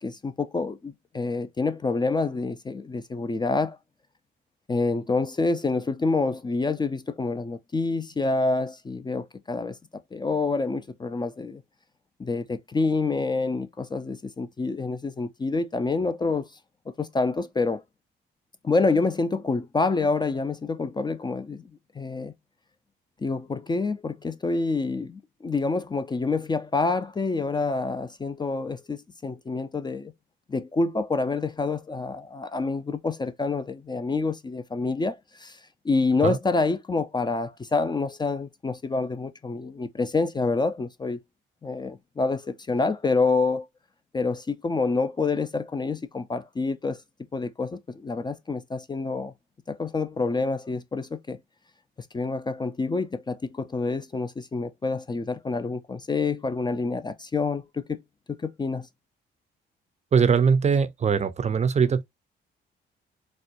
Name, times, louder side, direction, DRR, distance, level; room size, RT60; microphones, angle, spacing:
voice 1, 0.0-3.8 4.7-11.6 12.2-16.5 17.0-17.8 18.6-21.6 21.9-22.3 23.2-30.1 30.5-35.6 35.8-41.2 41.6-43.7 44.1-47.0 47.3-49.3 49.7-51.4 52.1-58.0 58.4-58.9, left 3 dB, 20° left, 0.4 m, -27 dB
voice 2, 60.1-62.0, right 6 dB, 35° right, 0.5 m, -21 dB
4.2 x 2.2 x 2.5 m
cardioid pair, 90°, 20 cm